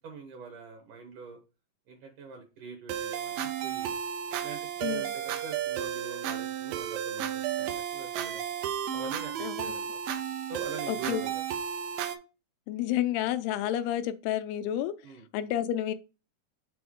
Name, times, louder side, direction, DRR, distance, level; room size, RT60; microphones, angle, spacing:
voice 1, 0.0-1.4 1.9-4.0 4.4-8.4 8.9-10.0 10.5-11.4 15.0-15.3, right 4 dB, 70° right, 2.1 m, -44 dB
sound 1, 2.9-12.2, right 9 dB, 90° right, 1.9 m, -33 dB
voice 2, 10.9-11.3 12.7-15.0 15.3-15.9, left 11 dB, 85° left, 2.4 m, -30 dB
6.8 x 4.0 x 3.6 m
omnidirectional pair, 4.7 m